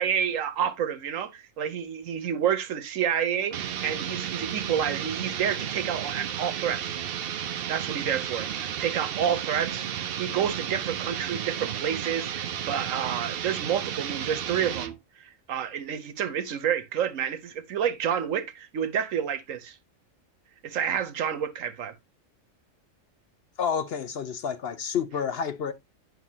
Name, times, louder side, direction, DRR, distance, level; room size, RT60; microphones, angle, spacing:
voice 1, 0.0-7.0 7.7-14.9 15.2-19.8 20.6-21.9, right 8 dB, 85° right, 1.3 m, -29 dB
sound 1, 3.5-15.0, right 9 dB, 55° right, 0.7 m, -33 dB
voice 2, 23.6-25.7, left 7 dB, 60° left, 0.8 m, -29 dB
9.3 x 5.6 x 2.7 m
omnidirectional pair, 1.3 m